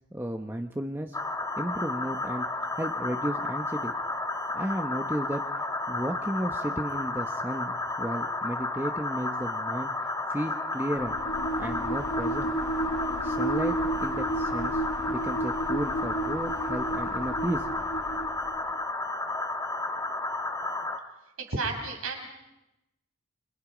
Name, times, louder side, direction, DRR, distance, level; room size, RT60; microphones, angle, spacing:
voice 1, 0.1-1.2 1.6-2.5 2.7-3.9 4.5-5.5 5.9-9.9 10.3-11.1 11.6-12.5 13.2-17.9, equal, 10° right, 4 dB, 0.9 m, -33 dB
sound 1, 1.1-21.0, left 2 dB, 15° left, 1.8 m, -32 dB
sound 2, 10.9-18.7, right 2 dB, 80° left, 2.2 m, -32 dB
voice 2, 21.4-22.3, right 3 dB, 85° right, 2 dB, 6.3 m, -32 dB
29.5 x 26.0 x 5.1 m, 0.95 s
head